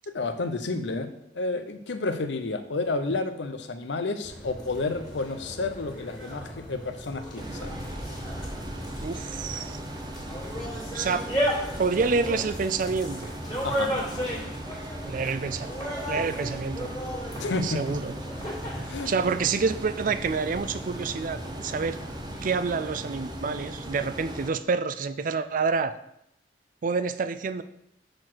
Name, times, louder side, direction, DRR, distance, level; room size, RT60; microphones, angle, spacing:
voice 1, 0.1-1.1 1.3-7.8 13.6-14.0 17.4-17.8 18.8-19.4, left 3 dB, 80° left, 8 dB, 0.7 m, -31 dB
sound 1, 4.2-22.5, equal, 25° left, 2.2 m, -35 dB
sound 2, 7.4-24.5, right 1 dB, 25° right, 0.8 m, -38 dB
voice 2, 9.0-9.8 10.9-11.3 11.8-13.3 15.0-15.7 16.1-16.9 17.6-18.2 18.8-22.0 22.4-26.0 26.8-27.6, right 4 dB, 50° right, 12 dB, 0.4 m, -28 dB
6.4 x 4.3 x 6.2 m, 0.78 s
head